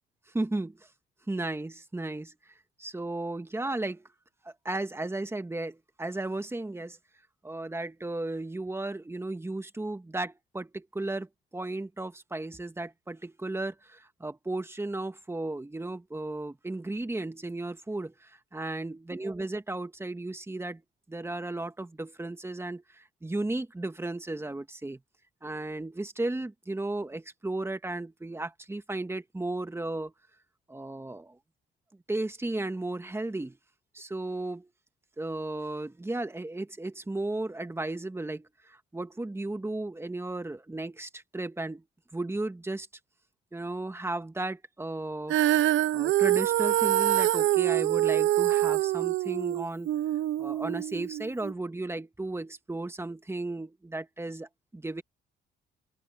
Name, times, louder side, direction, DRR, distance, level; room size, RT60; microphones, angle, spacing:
voice 1, 0.3-0.9 1.3-4.1 4.4-7.0 7.4-20.8 21.1-25.0 25.4-30.1 30.7-31.4 32.1-33.6 33.9-34.7 35.2-41.8 42.1-42.9 43.5-45.4 45.9-49.9 50.4-55.0, right 2 dB, 10° right, 1.7 m, -35 dB
Female singing, 45.3-51.5, right 14 dB, 75° right, 0.7 m, -25 dB
open air
cardioid pair, 90°, 20 cm